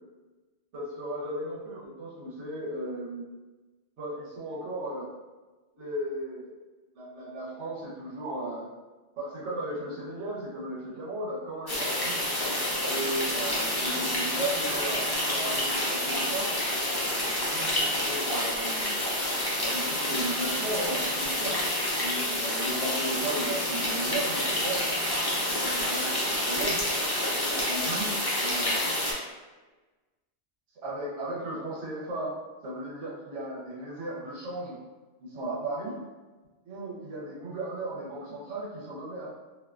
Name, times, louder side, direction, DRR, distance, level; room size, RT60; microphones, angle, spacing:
voice 1, 0.7-3.2 4.0-5.1 5.7-6.5 6.9-8.7 9.2-12.2 12.9-16.5 17.5-18.9 19.6-21.6 22.0-24.9 25.3-26.8 27.3-28.8 30.8-32.3 32.6-34.8 35.2-36.0 36.6-39.3, right 1 dB, 80° right, -5 dB, 1.0 m, -35 dB
sound 1, 11.7-29.1, left 1 dB, 40° left, 0.3 m, -28 dB
2.5 x 2.1 x 2.3 m, 1.2 s
omnidirectional pair, 1.2 m